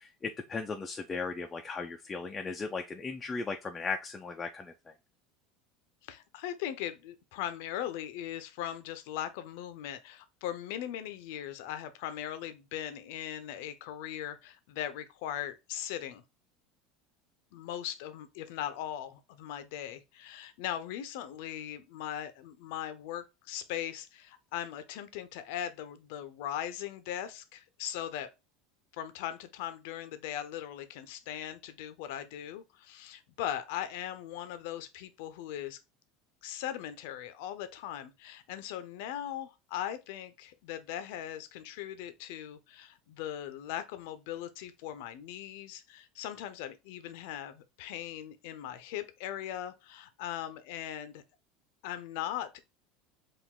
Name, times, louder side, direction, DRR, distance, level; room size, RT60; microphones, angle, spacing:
voice 1, 0.0-4.9, left 4 dB, 20° left, 0.6 m, -37 dB
voice 2, 6.0-16.2 17.5-28.3 28.9-35.8 36.4-51.2 51.8-52.6, left 11 dB, 75° left, 0.7 m, -39 dB
4.9 x 2.6 x 3.7 m
supercardioid pair, 105°, 0 cm